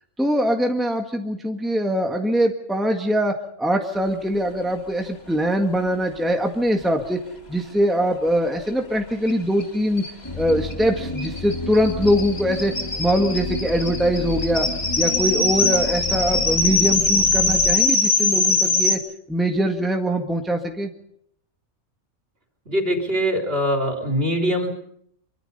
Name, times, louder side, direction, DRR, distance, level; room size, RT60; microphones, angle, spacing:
voice 1, 0.2-7.2 7.5-10.0 10.4-12.7 13.0-14.7 15.0-19.0 19.3-20.9, equal, ahead, 3 dB, 1.7 m, -22 dB
sound 1, 9.3-9.4 9.6-9.7 10.0-18.9, left 3 dB, 50° left, 2.8 m, -22 dB
sound 2, 10.2-17.7, left 3 dB, 20° left, 1.1 m, -31 dB
voice 2, 22.7-24.7, equal, 50° right, 3 dB, 3.9 m, -22 dB
25.0 x 23.5 x 5.5 m, 0.70 s
omnidirectional pair, 1.3 m